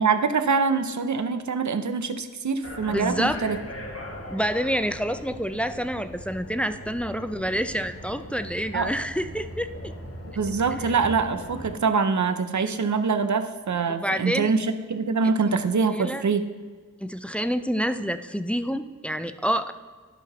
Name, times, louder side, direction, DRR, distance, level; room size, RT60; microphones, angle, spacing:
voice 1, 0.0-3.6 8.7-8.9 10.4-16.4, right 5 dB, 60° right, 9 dB, 0.7 m, -24 dB
sound 1, 2.6-11.8, equal, 45° left, 1.5 m, -39 dB
voice 2, 2.9-3.4 4.3-9.9 10.7-10.8 13.9-14.5 15.2-15.4 15.9-16.2 17.0-19.7, equal, 5° left, 10 dB, 0.4 m, -28 dB
11.5 x 4.0 x 5.6 m, 1.5 s
wide cardioid pair, 45°, 33 cm